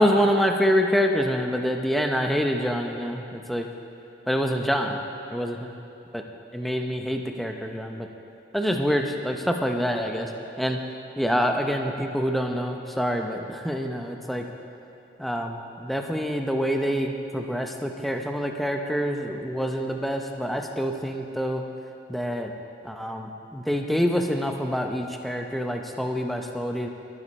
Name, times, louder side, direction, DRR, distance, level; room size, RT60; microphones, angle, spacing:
voice 1, 0.0-3.7 4.3-5.0 5.3-5.7 6.5-8.1 8.5-10.3 10.6-10.8 11.2-14.4 15.2-21.6 22.1-22.5 22.8-26.9, equal, ahead, 3 dB, 0.7 m, -26 dB
22.0 x 9.9 x 4.3 m, 2.7 s
head